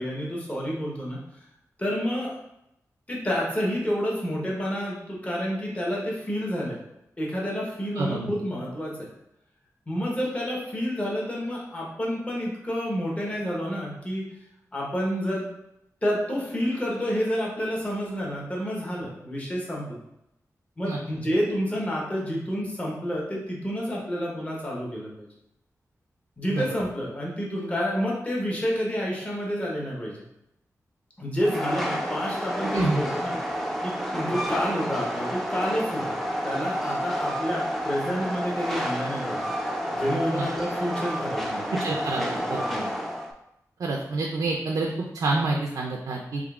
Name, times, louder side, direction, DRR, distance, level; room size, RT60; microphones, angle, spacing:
voice 1, 0.0-1.4 1.8-2.4 3.1-6.8 7.2-9.1 9.9-14.2 14.7-15.5 16.0-20.0 20.8-25.3 26.4-30.2 31.2-33.4 33.8-36.2 36.4-39.5 39.9-41.7 42.7-42.9, equal, 20° left, -3 dB, 0.9 m, -29 dB
voice 2, 8.0-8.3 20.8-21.0 26.5-26.6 32.7-33.0 40.3-40.4 41.7-42.7 43.8-46.4, right 3 dB, 85° right, 0 dB, 0.4 m, -28 dB
Train, 31.4-43.3, equal, ahead, 0.5 m, -30 dB
3.6 x 3.4 x 2.3 m, 0.83 s
wide cardioid pair, 120°, 6 cm